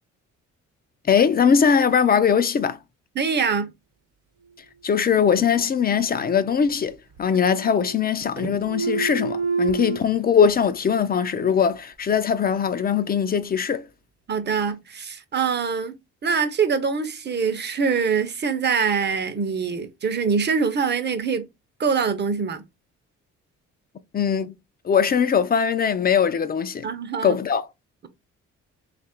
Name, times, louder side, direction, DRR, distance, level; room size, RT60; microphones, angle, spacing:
voice 1, 1.0-2.8 4.8-13.9 24.1-24.5 24.8-26.9 27.2-27.7, left 7 dB, 30° left, 0.4 m, -21 dB
voice 2, 3.2-3.7 14.3-16.0 16.2-21.5 21.8-22.6 26.8-27.4, right 5 dB, 35° right, 0.7 m, -24 dB
sound 1, 5.9-6.9 7.2-8.1 8.4-10.0, right 5 dB, 55° right, 1.0 m, -29 dB
2.9 x 2.5 x 4.3 m
cardioid pair, 90°, 30 cm